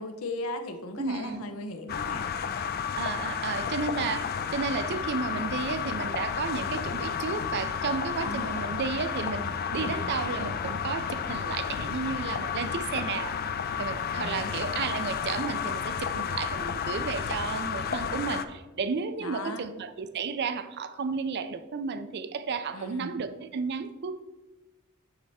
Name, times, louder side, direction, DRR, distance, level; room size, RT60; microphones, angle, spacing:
voice 1, 0.0-2.3 8.2-8.6 9.8-10.1 14.1-14.6 19.2-19.7 22.7-23.1, left 2 dB, 75° left, 6 dB, 0.8 m, -37 dB
voice 2, 1.0-1.5 3.0-13.4 13.8-24.2, right 5 dB, 50° right, 11 dB, 0.4 m, -33 dB
sound 1, 1.9-18.4, left 7 dB, 45° left, 0.4 m, -32 dB
9.3 x 3.4 x 4.2 m, 1.2 s
head